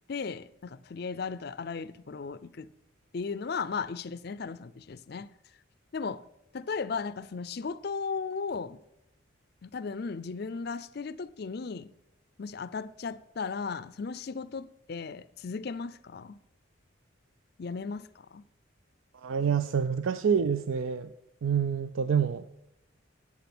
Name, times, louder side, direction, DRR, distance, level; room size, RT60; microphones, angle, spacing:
voice 1, 0.1-2.7 3.1-5.3 5.9-6.2 6.5-8.8 9.6-11.9 12.4-16.4 17.6-18.4, left 5 dB, 50° left, 0.4 m, -36 dB
voice 2, 19.1-21.1 21.4-22.5, right 7 dB, 75° right, 0.4 m, -27 dB
10.5 x 8.4 x 6.0 m
head